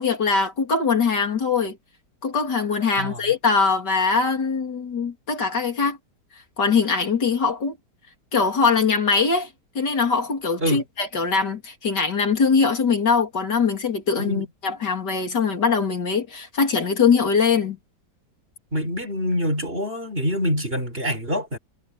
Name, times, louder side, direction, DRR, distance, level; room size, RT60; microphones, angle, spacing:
voice 1, 0.0-1.8 2.2-6.0 6.6-7.8 8.3-9.5 9.8-17.8, left 5 dB, 75° left, 3.8 m, -22 dB
voice 2, 14.2-14.5 18.7-21.6, equal, 30° right, 5.5 m, -25 dB
omnidirectional pair, 1.9 m